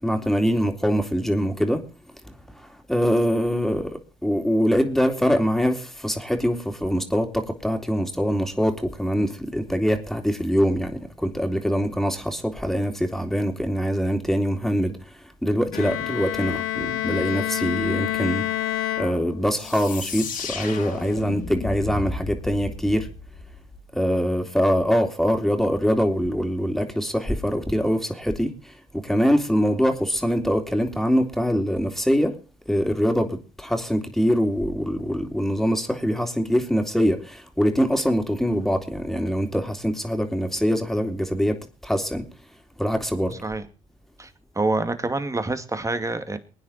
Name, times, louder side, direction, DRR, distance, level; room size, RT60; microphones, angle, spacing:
voice 1, 0.0-1.8 2.2-15.0 15.4-18.5 19.0-23.1 23.9-32.4 32.7-42.2 42.8-43.4, equal, ahead, 3.5 m, -23 dB
Bowed string instrument, 15.7-19.7, left 13 dB, 80° left, 2.0 m, -28 dB
sound 1, 19.5-24.1, left 4 dB, 65° left, 3.5 m, -34 dB
voice 2, 44.2-46.4, right 2 dB, 20° right, 2.4 m, -27 dB
22.5 x 9.5 x 4.4 m
hypercardioid pair, 55°, 16 cm